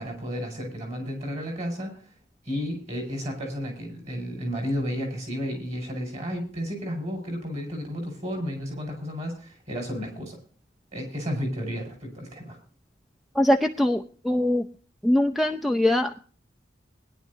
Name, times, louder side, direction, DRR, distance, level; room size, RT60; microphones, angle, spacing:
voice 1, 0.0-2.0 2.4-10.4 10.9-12.6, equal, 35° right, 3 dB, 5.5 m, -32 dB
voice 2, 13.4-14.7 15.0-16.2, left 1 dB, ahead, 6 dB, 0.5 m, -22 dB
20.5 x 10.5 x 2.7 m, 0.41 s
head